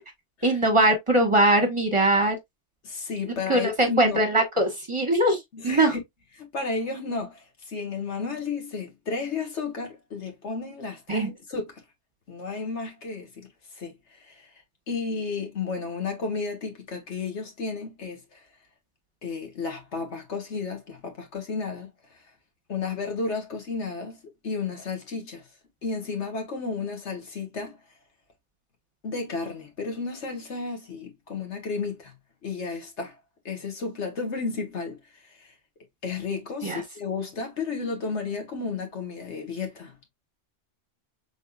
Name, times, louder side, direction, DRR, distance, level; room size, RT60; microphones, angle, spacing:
voice 1, 0.4-2.4 3.5-5.9 11.1-11.3 36.6-36.8, right 1 dB, 25° right, 1.1 m, -21 dB
voice 2, 2.8-4.2 5.5-5.9 6.4-11.6 12.3-13.5 13.8-14.5 14.9-18.4 19.2-21.9 22.7-24.2 24.4-25.5 25.8-27.8 29.0-32.1 32.4-33.1 33.4-35.0 35.3-35.5 36.0-39.9, left 4 dB, 75° left, 1.6 m, -32 dB
5.3 x 3.6 x 2.3 m
omnidirectional pair, 1.2 m